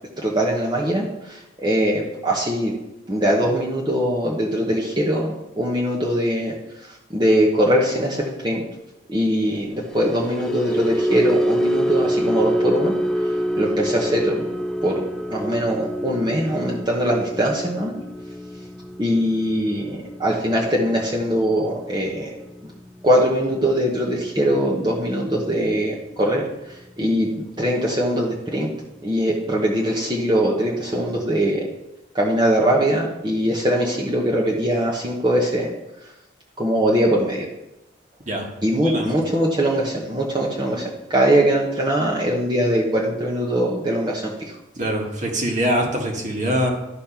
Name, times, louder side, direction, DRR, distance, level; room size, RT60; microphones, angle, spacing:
voice 1, 0.2-2.7 3.1-6.5 6.8-8.6 9.1-12.9 13.6-14.5 14.8-15.0 15.3-17.9 19.0-22.3 23.0-28.7 29.0-31.6 32.1-35.7 36.6-37.5 38.6-44.5, equal, 25° right, -4 dB, 1.1 m, -21 dB
sound 1, 9.7-26.1 26.4-26.7 27.1-27.3, equal, 5° left, 0.3 m, -27 dB
voice 2, 44.8-46.7, equal, 40° right, 0 dB, 1.8 m, -23 dB
12.0 x 4.3 x 5.7 m, 0.95 s
head